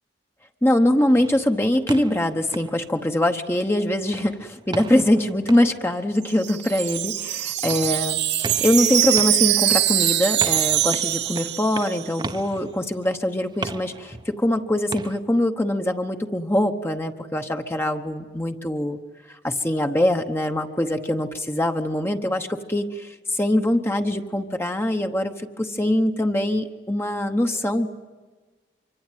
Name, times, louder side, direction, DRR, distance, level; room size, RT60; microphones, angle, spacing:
voice 1, 0.6-19.0 19.3-27.9, left 1 dB, 15° left, 5 dB, 1.0 m, -23 dB
sound 1, 1.2-3.7 4.1-15.2, right 3 dB, 25° right, 0.9 m, -38 dB
Wind chime, 6.2-12.2, right 13 dB, 85° right, 1.5 m, -23 dB
25.5 x 24.5 x 9.2 m, 1.4 s
head